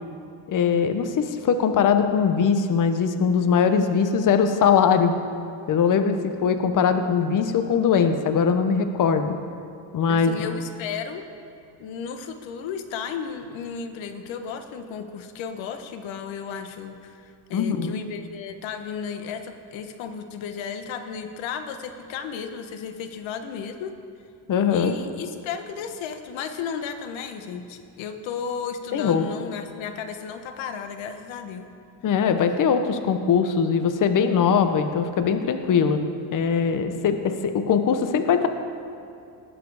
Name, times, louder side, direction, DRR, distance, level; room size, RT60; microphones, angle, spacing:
voice 1, 0.5-5.1 5.7-9.4 9.9-10.5 17.5-17.9 24.5-24.9 28.9-29.2 32.0-36.0 36.3-38.5, left 6 dB, 40° left, 8 dB, 0.9 m, -21 dB
voice 2, 10.1-11.3 11.8-24.0 24.7-31.7, left 6 dB, 70° left, 8 dB, 1.2 m, -34 dB
19.0 x 7.7 x 4.9 m, 2.5 s
cardioid pair, 120°, 48 cm